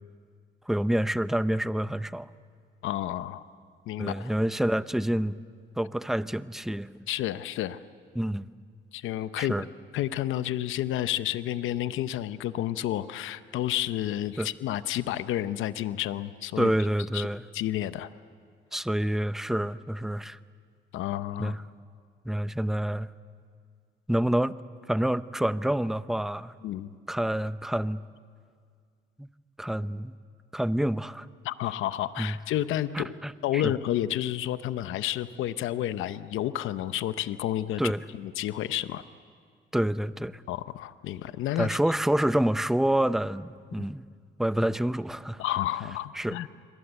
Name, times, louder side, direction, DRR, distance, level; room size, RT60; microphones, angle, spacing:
voice 1, 0.7-2.3 4.0-5.4 5.8-6.9 8.1-8.5 9.4-9.7 14.4-14.5 16.6-17.4 18.7-20.4 21.4-21.6 22.2-23.1 24.1-24.6 24.9-26.5 27.1-28.0 29.2-29.3 29.6-30.1 30.5-31.3 32.2-32.3 32.9-33.7 37.8-38.0 39.7-40.4 41.6-44.1 44.4-45.4 46.1-46.4, right 1 dB, ahead, 15 dB, 0.6 m, -27 dB
voice 2, 2.8-3.4 3.9-4.3 7.1-7.8 8.9-9.6 9.9-16.7 17.1-17.3 17.5-18.1 20.9-21.5 26.6-26.9 31.4-33.1 33.4-39.0 40.5-41.7 43.8-43.9 45.4-46.5, left 13 dB, 85° left, 13 dB, 0.8 m, -30 dB
28.0 x 22.5 x 8.1 m, 2.1 s
cardioid pair, 90°, 20 cm